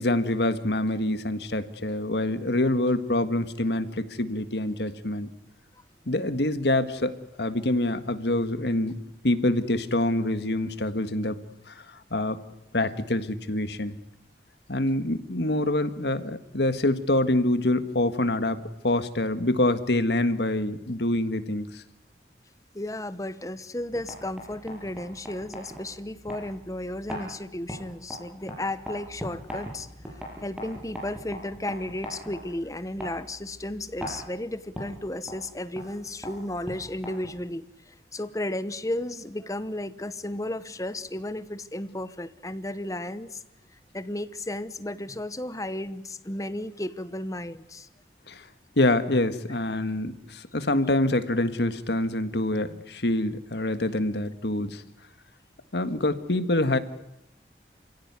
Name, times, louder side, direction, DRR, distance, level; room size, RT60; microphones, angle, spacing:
voice 1, 0.0-5.3 6.1-8.9 9.2-11.4 12.1-12.4 12.7-13.9 14.7-21.8 48.3-48.4 48.8-54.8 55.7-56.8, left 1 dB, 70° left, 11 dB, 1.7 m, -26 dB
voice 2, 22.7-29.9 30.4-43.4 43.9-47.9, left 1 dB, 20° left, 14 dB, 1.0 m, -34 dB
sound 1, 23.8-37.5, equal, 5° right, 7.0 m, -41 dB
29.0 x 16.5 x 9.7 m, 0.88 s
head